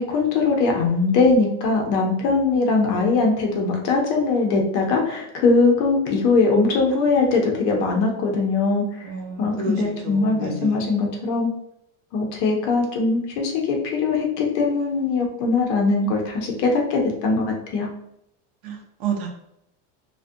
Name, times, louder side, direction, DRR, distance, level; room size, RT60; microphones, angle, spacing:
voice 1, 0.0-8.8 9.4-11.5 12.1-17.9, left 3 dB, 40° left, 1 dB, 0.5 m, -21 dB
voice 2, 9.0-10.8 18.6-19.3, right 5 dB, 70° right, 1 dB, 0.7 m, -30 dB
2.4 x 2.1 x 2.5 m, 0.77 s
cardioid pair, 175°, 34 cm